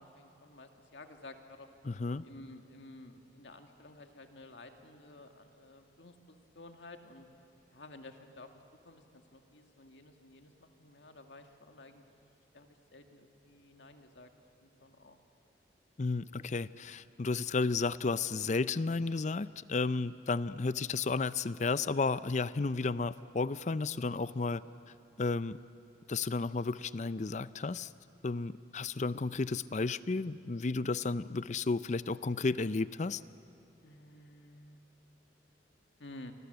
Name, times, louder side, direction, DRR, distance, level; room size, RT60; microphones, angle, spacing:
voice 1, 0.0-1.7 2.2-7.3 7.7-12.1 12.5-14.3 14.6-15.2 33.8-34.8 36.0-36.3, left 2 dB, 85° left, 5 dB, 2.1 m, -53 dB
voice 2, 1.8-2.3 16.0-24.6 25.2-25.6 26.1-27.9 28.2-33.2, left 3 dB, 40° left, 16 dB, 0.5 m, -33 dB
29.0 x 25.0 x 8.0 m, 2.7 s
head